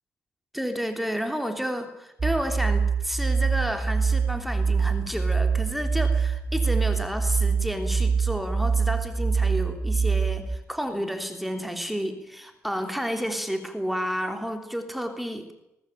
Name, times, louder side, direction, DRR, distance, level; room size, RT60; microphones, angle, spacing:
voice 1, 0.5-15.6, equal, ahead, 6 dB, 3.4 m, -31 dB
sound 1, 2.2-10.6, right 5 dB, 30° right, 4.9 m, -24 dB
21.0 x 20.5 x 9.1 m, 0.87 s
cardioid pair, 110°, 5 cm